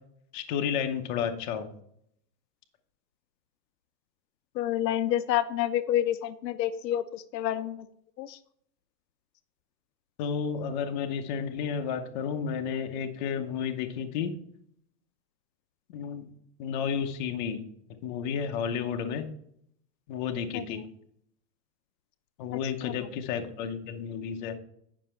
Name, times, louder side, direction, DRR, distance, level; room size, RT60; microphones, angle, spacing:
voice 1, 0.3-1.7 10.2-14.3 15.9-16.3 16.6-17.6 18.0-19.3 20.1-20.8 22.4-24.5, left 7 dB, 30° left, 6 dB, 0.7 m, -31 dB
voice 2, 4.6-7.9 8.2-8.4 20.5-20.8 22.8-22.9, left 12 dB, 90° left, 12 dB, 0.8 m, -29 dB
9.5 x 6.1 x 4.4 m, 0.71 s
supercardioid pair, 175°, 49 cm